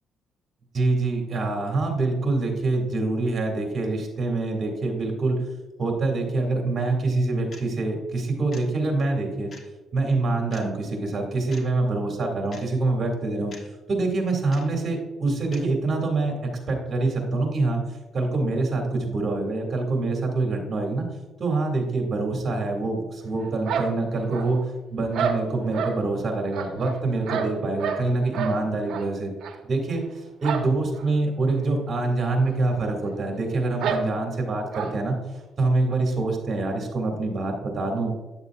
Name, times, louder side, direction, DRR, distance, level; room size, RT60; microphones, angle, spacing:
voice 1, 0.7-5.4 5.8-9.5 9.9-13.5 13.9-17.8 18.1-21.0 21.4-24.6 24.9-29.3 29.6-30.0 30.4-35.2 35.6-38.1, right 3 dB, 40° right, 1 dB, 2.0 m, -25 dB
sound 1, 7.5-7.6 8.5-8.6 9.5-9.7 10.5-10.7 11.5-11.7 12.5-12.6 13.5-13.7 14.5-14.7 15.5-15.7, left 3 dB, 45° left, 1.3 m, -44 dB
sound 2, 23.7-24.7 25.1-26.0 26.5-28.1 28.3-28.6 28.9-29.1 29.4-29.5 30.4-30.7 31.0-31.1 31.5-31.6 32.4-32.5 32.8-32.9 33.8-34.1 34.7-34.9, right 6 dB, 80° right, 0.8 m, -29 dB
9.4 x 6.8 x 2.4 m, 1.2 s
cardioid pair, 90°, 0 cm